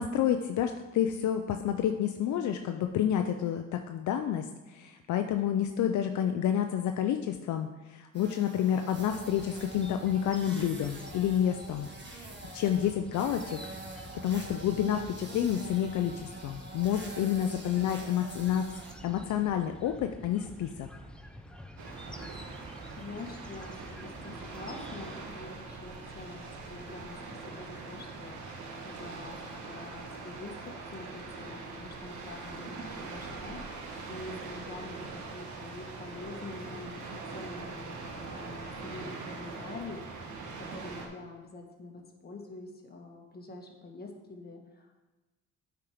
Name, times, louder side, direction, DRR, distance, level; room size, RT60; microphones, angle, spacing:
voice 1, 0.0-13.6 14.2-18.7 19.0-20.9, left 10 dB, 70° left, 6 dB, 0.5 m, -29 dB
sound 1, 8.1-18.9, right 2 dB, 35° right, 1.4 m, -46 dB
sound 2, 8.9-25.2, equal, 5° left, 0.6 m, -49 dB
sound 3, 21.8-41.1, right 3 dB, 75° right, 1.3 m, -42 dB
voice 2, 22.9-28.4 28.8-33.7 34.1-40.1 40.6-45.0, left 3 dB, 30° left, 1 dB, 1.5 m, -46 dB
8.5 x 4.6 x 5.0 m, 1.1 s
cardioid pair, 90°, 30 cm